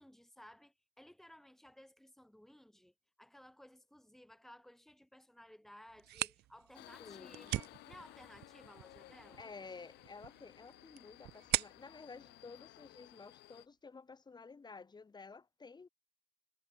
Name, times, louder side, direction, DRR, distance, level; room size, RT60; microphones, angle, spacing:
voice 1, 0.0-9.4, equal, ahead, 3.8 m, -58 dB
sound 1, 5.9-13.4, right 17 dB, 75° right, 0.8 m, -43 dB
Subway metro underground, 6.7-13.7, left 18 dB, 80° left, 2.3 m, -57 dB
voice 2, 7.0-7.5 9.4-15.9, left 4 dB, 25° left, 4.3 m, -52 dB
cardioid pair, 110°, 17 cm